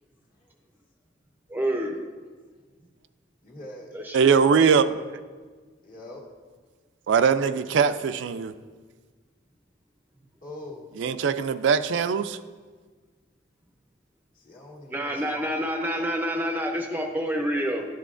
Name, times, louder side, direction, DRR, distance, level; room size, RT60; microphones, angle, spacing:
voice 1, 1.5-2.0 3.9-4.3 14.9-17.8, equal, 10° right, 2 dB, 0.5 m, -28 dB
voice 2, 3.4-4.3 5.8-6.3 10.4-10.8 14.3-15.5, left 1 dB, 45° left, -3 dB, 1.7 m, -43 dB
voice 3, 4.1-5.0 7.1-8.5 11.0-12.4, right 6 dB, 75° right, 12 dB, 0.3 m, -21 dB
11.5 x 8.2 x 2.5 m, 1.5 s
head